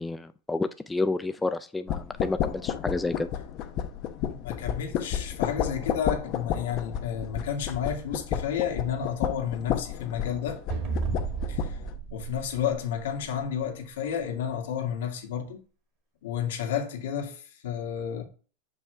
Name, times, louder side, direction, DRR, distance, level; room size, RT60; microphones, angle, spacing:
voice 1, 0.0-3.3, left 3 dB, 5° left, 0.3 m, -30 dB
sound 1, 1.9-11.9, left 9 dB, 35° left, 0.8 m, -32 dB
voice 2, 4.2-10.6 11.5-11.8 12.1-15.6 16.2-18.2, left 8 dB, 80° left, 1.9 m, -31 dB
sound 2, 10.7-13.4, right 5 dB, 40° right, 1.6 m, -33 dB
6.5 x 5.4 x 3.3 m
supercardioid pair, 160°, 0 cm